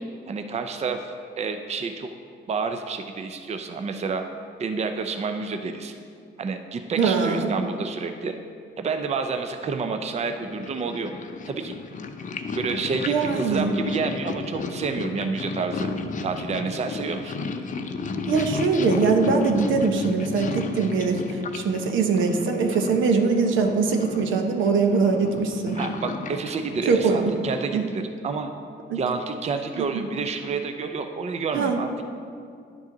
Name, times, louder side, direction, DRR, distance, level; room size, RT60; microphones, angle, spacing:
voice 1, 0.3-1.1 1.4-2.1 2.5-4.2 4.6-6.0 6.4-8.4 8.8-11.1 11.4-11.7 12.5-15.9 16.2-17.4 25.7-28.5 28.9-32.0, right 4 dB, 35° right, 6 dB, 0.5 m, -29 dB
voice 2, 7.0-7.5 13.1-13.8 18.3-25.8 26.8-27.3 27.7-27.9 28.9-29.0 29.8-30.0 31.5-31.8, right 4 dB, 80° right, 4 dB, 0.9 m, -22 dB
Purr, 10.1-27.8, left 4 dB, 40° left, 0.6 m, -33 dB
10.5 x 6.3 x 3.8 m, 2.3 s
cardioid pair, 90°, 20 cm